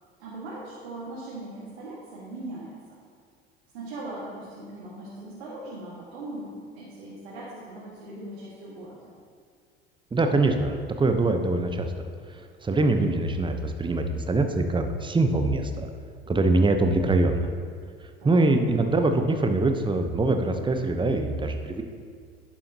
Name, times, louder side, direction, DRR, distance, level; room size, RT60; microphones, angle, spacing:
voice 1, 0.2-3.0 3.7-9.1 18.2-18.5, right 2 dB, 75° right, -7 dB, 1.8 m, -40 dB
voice 2, 10.1-11.9 12.6-15.9 16.3-17.4 18.2-21.8, right 2 dB, 15° right, 6 dB, 0.8 m, -23 dB
11.0 x 7.1 x 2.9 m, 2.1 s
hypercardioid pair, 70°, 31 cm